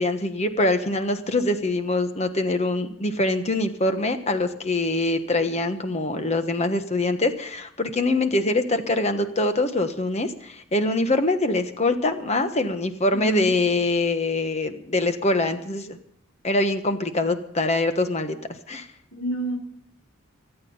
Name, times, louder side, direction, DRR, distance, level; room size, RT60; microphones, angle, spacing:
voice 1, 0.0-16.0 16.4-18.3 18.7-18.9, left 2 dB, 30° left, 8 dB, 1.3 m, -24 dB
voice 2, 13.1-13.5 19.1-19.6, right 2 dB, 65° left, 1 dB, 3.9 m, -28 dB
25.5 x 9.1 x 5.5 m, 0.71 s
head